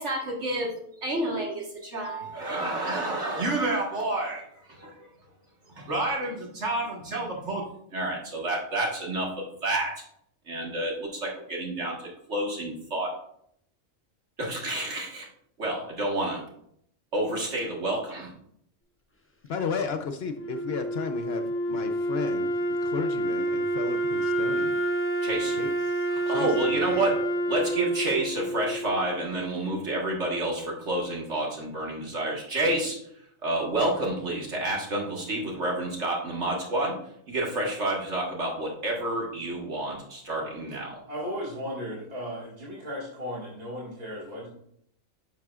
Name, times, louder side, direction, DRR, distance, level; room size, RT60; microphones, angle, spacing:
voice 1, 0.0-4.4 4.7-5.1 5.8-7.6 7.9-9.9 10.5-13.1 14.4-15.3 15.6-16.4 17.1-18.3 25.2-25.6 26.1-27.2 27.5-33.0 33.4-37.0 37.3-41.0, right 1 dB, 65° right, -1 dB, 1.8 m, -29 dB
voice 2, 19.5-24.8 25.4-27.1, left 5 dB, 60° left, 7 dB, 0.8 m, -34 dB
Wind instrument woodwind instrument, 20.3-29.4, right 1 dB, 20° left, 0.4 m, -28 dB
voice 3, 41.0-44.5, equal, 35° right, -5 dB, 1.9 m, -35 dB
10.0 x 6.2 x 2.4 m, 0.70 s
omnidirectional pair, 1.3 m